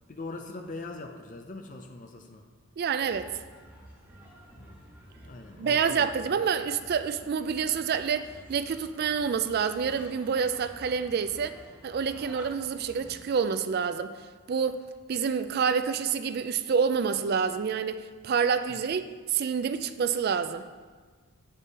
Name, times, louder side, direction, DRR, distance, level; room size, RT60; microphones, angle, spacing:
voice 1, 0.1-2.4 4.6-4.8 5.2-6.1 18.7-18.8, left 2 dB, 35° left, 4 dB, 0.5 m, -41 dB
voice 2, 2.8-3.3 5.6-11.5 11.8-14.2 14.5-14.8 15.1-20.7, right 6 dB, 45° right, 11 dB, 0.3 m, -28 dB
sound 1, 3.0-13.4, equal, 10° right, 1.3 m, -50 dB
8.4 x 5.4 x 4.1 m, 1.5 s
head